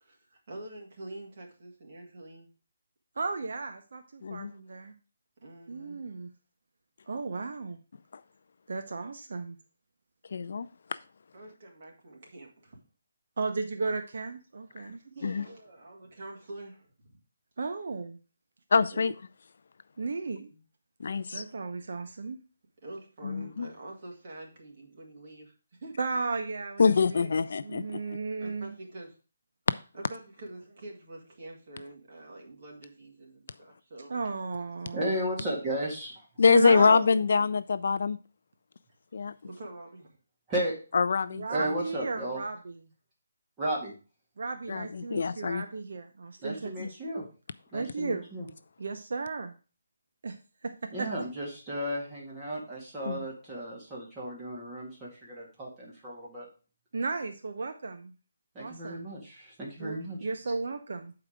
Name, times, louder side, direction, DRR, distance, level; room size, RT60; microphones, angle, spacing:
voice 1, 0.0-2.5 5.4-6.1 11.3-12.8 14.6-17.2 18.9-19.1 20.5-20.6 22.8-25.9 28.4-29.2 29.9-34.1 37.2-37.3 39.4-40.2, right 2 dB, 35° right, -1 dB, 2.0 m, -46 dB
voice 2, 3.2-4.9 5.7-6.3 7.1-7.8 8.7-9.6 13.4-15.0 17.6-18.2 20.0-20.5 21.3-22.4 26.0-27.3 27.6-28.7 34.1-35.1 35.4-35.5 36.5-37.1 41.3-42.8 44.4-46.9 47.7-48.3 48.8-49.5 50.2-50.4 50.6-51.1 56.9-58.1 58.6-59.0 59.8-61.1, right 3 dB, 55° right, 6 dB, 0.8 m, -34 dB
voice 3, 10.3-10.7 14.8-14.9 15.2-15.4 18.7-19.1 21.0-21.4 23.2-23.7 26.8-28.0 36.4-38.2 39.1-39.3 40.9-41.4 44.7-45.6 46.8-46.9 53.1-53.2, left 5 dB, 50° left, 15 dB, 0.3 m, -24 dB
voice 4, 34.9-36.3 40.5-40.7 41.5-42.4 43.6-43.9 46.4-47.3 47.7-48.5 50.9-56.5 58.5-60.3, right 1 dB, 10° right, -6 dB, 1.9 m, -34 dB
7.7 x 4.8 x 5.0 m, 0.34 s
hypercardioid pair, 175°, 0 cm